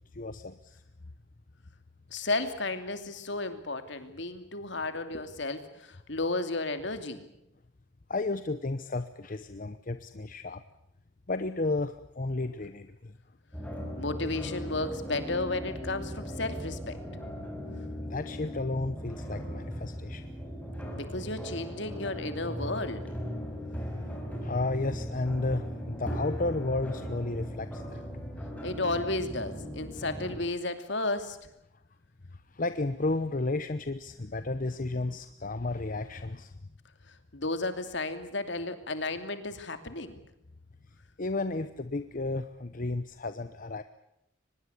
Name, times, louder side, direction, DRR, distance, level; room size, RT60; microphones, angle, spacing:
voice 1, 0.1-0.8 8.1-10.6 11.3-13.1 18.0-20.3 24.4-28.0 32.5-36.5 41.2-43.8, left 2 dB, 45° left, 11 dB, 0.9 m, -32 dB
voice 2, 2.1-7.3 14.0-17.0 20.9-23.0 28.6-31.4 37.1-40.2, left 2 dB, 65° left, 9 dB, 2.8 m, -33 dB
sound 1, 13.5-30.4, equal, 5° left, 5.9 m, -38 dB
24.0 x 20.5 x 8.4 m, 0.80 s
head